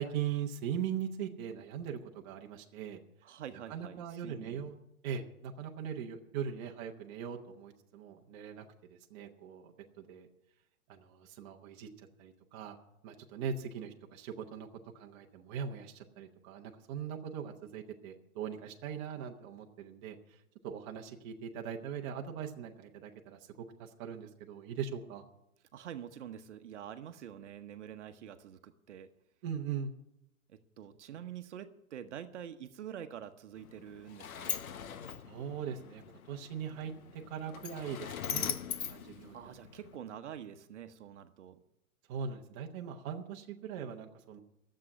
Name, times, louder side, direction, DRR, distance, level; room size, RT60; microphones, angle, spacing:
voice 1, 0.0-3.0 3.5-4.7 5.0-8.6 9.1-10.3 10.9-12.8 13.0-14.7 14.9-20.4 20.6-23.5 23.8-25.2 29.4-29.9 31.1-31.2 35.2-39.5 42.1-44.4, right 8 dB, 20° right, 2 dB, 0.9 m, -40 dB
voice 2, 3.2-4.7 25.7-29.1 30.5-34.6 39.3-41.6, right 9 dB, 55° right, 9 dB, 1.0 m, -46 dB
Sliding door, 33.6-40.0, left 8 dB, 70° left, 1.0 m, -41 dB
12.5 x 7.6 x 9.5 m, 0.84 s
hypercardioid pair, 150°, 43 cm